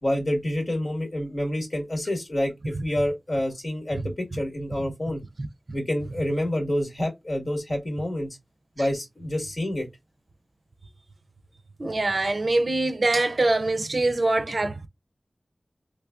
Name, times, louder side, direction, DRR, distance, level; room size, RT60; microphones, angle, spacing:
voice 1, 0.0-5.2 5.7-8.4 8.8-9.9, left 1 dB, 60° left, 1.6 m, -28 dB
voice 2, 11.8-14.9, right 2 dB, 65° right, 0.4 m, -24 dB
3.5 x 3.0 x 2.4 m
wide cardioid pair, 50°, 0 cm